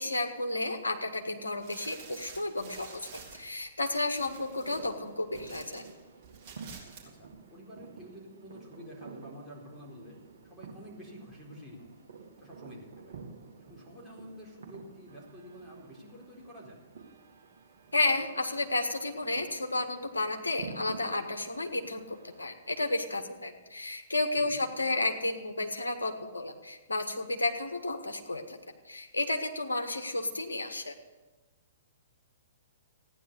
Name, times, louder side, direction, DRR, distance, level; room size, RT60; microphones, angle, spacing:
voice 1, 0.0-5.8 17.9-28.6 28.8-30.9, left 2 dB, 80° left, 5 dB, 1.6 m, -32 dB
sound 1, 1.6-5.9 6.2-7.1 7.3-7.4, right 6 dB, 30° right, 3.6 m, -50 dB
sound 2, 4.1-22.5, right 4 dB, 60° right, 1.7 m, -50 dB
voice 2, 7.0-10.2 10.4-12.0 12.3-13.2 13.6-16.8 24.4-24.6, equal, ahead, -5 dB, 4.3 m, -49 dB
15.0 x 10.0 x 6.8 m, 1.1 s
figure-of-eight pair, 115°, 0 cm